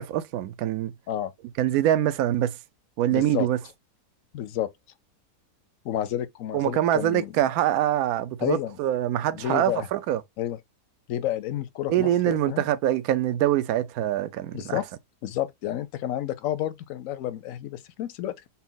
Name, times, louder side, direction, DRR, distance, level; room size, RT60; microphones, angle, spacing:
voice 1, 0.0-0.9 1.6-2.5 3.0-3.6 6.5-10.2 11.9-14.8, right 12 dB, 70° right, 1.0 m, -24 dB
voice 2, 3.1-3.5 4.3-4.7 5.8-7.3 8.4-8.8 9.3-9.9 10.4-10.6 11.1-12.6 14.5-14.9 15.2-18.5, left 12 dB, 70° left, 0.8 m, -30 dB
4.2 x 2.0 x 3.8 m
omnidirectional pair, 1.7 m